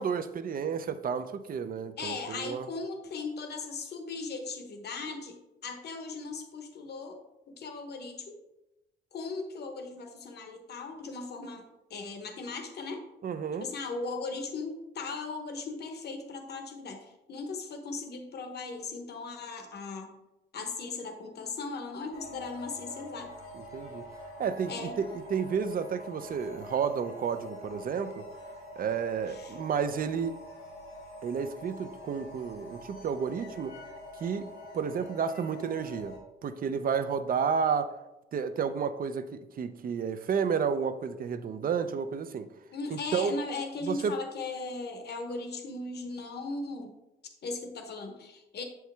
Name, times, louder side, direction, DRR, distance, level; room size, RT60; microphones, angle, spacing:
voice 1, 0.0-2.7 13.2-13.7 23.5-24.1 24.4-28.2 28.8-30.4 31.2-33.8 34.2-34.5 34.7-37.9 38.3-42.5 42.9-43.3 43.8-44.1, right 6 dB, 45° right, 0.5 m, -31 dB
voice 2, 2.0-5.4 5.6-7.2 7.5-8.4 9.1-13.0 13.6-20.1 20.5-23.3 24.7-25.0 29.3-29.6 42.7-46.9 47.4-48.6, left 3 dB, 55° left, 1.1 m, -38 dB
sound 1, 22.1-36.2, left 1 dB, 80° left, 1.7 m, -46 dB
6.9 x 4.7 x 3.4 m
cardioid pair, 90°, 20 cm